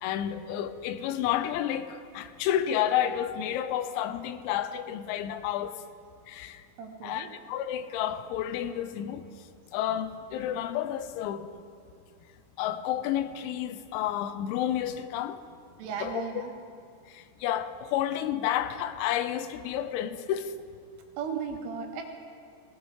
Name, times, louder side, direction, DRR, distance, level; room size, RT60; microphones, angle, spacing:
voice 1, 0.0-5.8 6.3-6.6 7.0-9.2 9.7-11.5 12.6-15.4 16.0-16.4 17.1-20.5, left 11 dB, 90° left, 3.4 m, -30 dB
voice 2, 6.8-7.3 15.8-16.5 21.2-22.0, right 6 dB, 80° right, 3.6 m, -35 dB
19.5 x 16.0 x 3.2 m
omnidirectional pair, 6.0 m